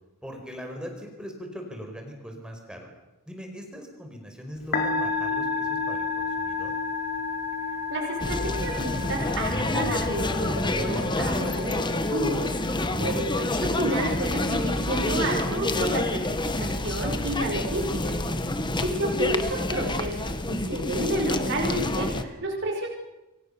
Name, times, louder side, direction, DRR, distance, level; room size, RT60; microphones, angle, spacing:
voice 1, 0.2-2.9 3.3-6.7 18.4-19.2, equal, 5° right, 3 dB, 5.0 m, -40 dB
Musical instrument, 4.6-19.3, left 4 dB, 50° left, 4.9 m, -34 dB
voice 2, 7.9-18.2 18.8-22.9, right 1 dB, 55° right, 0 dB, 5.9 m, -30 dB
sound 1, 8.2-22.2, left 1 dB, 20° left, 1.6 m, -28 dB
29.5 x 23.5 x 7.0 m, 1.0 s
head